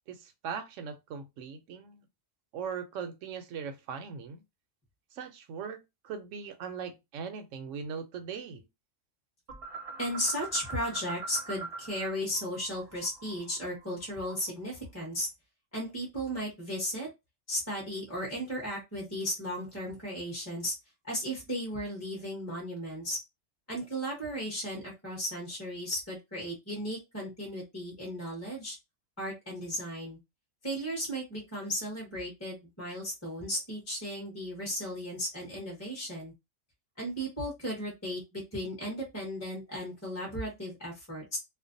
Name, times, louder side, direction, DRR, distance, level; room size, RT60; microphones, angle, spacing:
voice 1, 0.0-2.0 2.5-4.4 5.1-8.7, right 6 dB, 80° right, 0.9 m, -40 dB
sound 1, 9.5-12.1 12.3-14.6, right 4 dB, 35° right, 0.6 m, -42 dB
voice 2, 10.0-15.3 15.7-17.1 17.5-20.7 21.1-23.2 23.7-28.8 29.2-30.2 30.6-36.3 37.0-41.4, equal, 15° left, 0.8 m, -35 dB
2.5 x 2.1 x 2.5 m
omnidirectional pair, 1.3 m